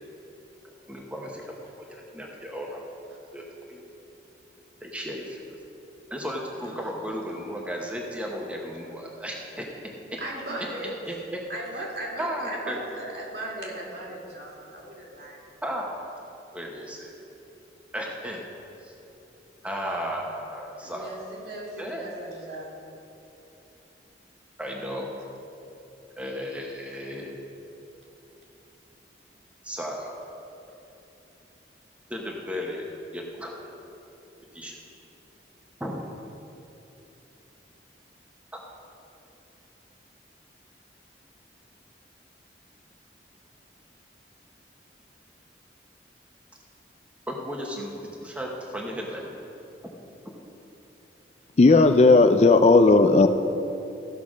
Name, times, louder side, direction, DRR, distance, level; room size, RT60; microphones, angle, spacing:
voice 1, 0.9-1.5 1.9-2.8 3.3-3.8 4.8-5.4 6.1-10.2 10.8-11.4 11.8-11.9 12.2-12.8 15.6-15.9 16.5-17.1 17.9-18.4 18.8-18.9 19.6-21.2 21.8-22.0 24.6-25.1 26.2-27.3 29.6-30.2 32.1-32.9 33.1-33.6 34.5-34.8 35.8-35.9 38.5-38.6 47.3-49.4, equal, 5° right, -1 dB, 1.0 m, -34 dB
voice 2, 6.5-6.9 10.2-10.9 11.5-15.4 20.8-22.7, right 1 dB, 60° right, -4 dB, 2.5 m, -37 dB
voice 3, 51.6-53.3, left 3 dB, 35° left, 8 dB, 0.4 m, -15 dB
15.0 x 5.7 x 6.3 m, 2.9 s
head